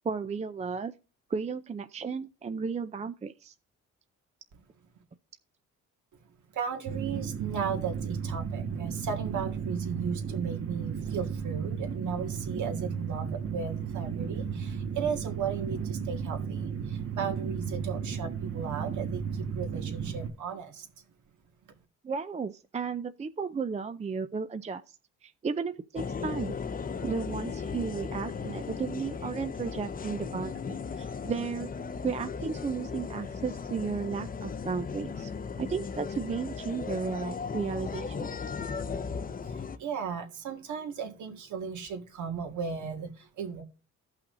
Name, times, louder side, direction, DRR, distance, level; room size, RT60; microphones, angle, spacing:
voice 1, 0.0-0.9 1.3-3.5 22.0-25.0 25.2-26.5 27.0-31.7 32.0-35.3 35.6-38.4, right 5 dB, 25° right, 0.5 m, -34 dB
voice 2, 6.5-21.0 39.4-43.6, right 6 dB, 75° right, 1.9 m, -36 dB
sound 1, 6.9-20.3, right 6 dB, 50° right, 1.4 m, -34 dB
sound 2, 26.0-39.8, left 5 dB, 30° left, 0.6 m, -36 dB
15.5 x 5.7 x 2.7 m
cardioid pair, 90°, 30 cm